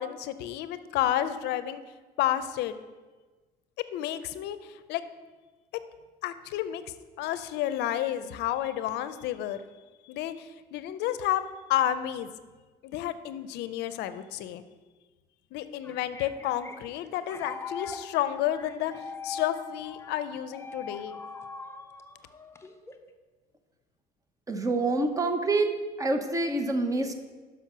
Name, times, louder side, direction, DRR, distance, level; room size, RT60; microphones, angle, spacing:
voice 1, 0.0-1.8 2.2-2.8 3.9-5.0 6.2-6.8 7.2-9.6 10.1-11.4 11.7-12.3 12.8-14.6 15.5-21.2, left 12 dB, 85° left, 13 dB, 0.5 m, -31 dB
sound 1, 15.6-23.1, left 4 dB, 15° left, 0.5 m, -42 dB
voice 2, 24.5-27.1, right 2 dB, 20° right, 6 dB, 0.7 m, -27 dB
5.9 x 5.6 x 6.0 m, 1.3 s
cardioid pair, 110°, 17 cm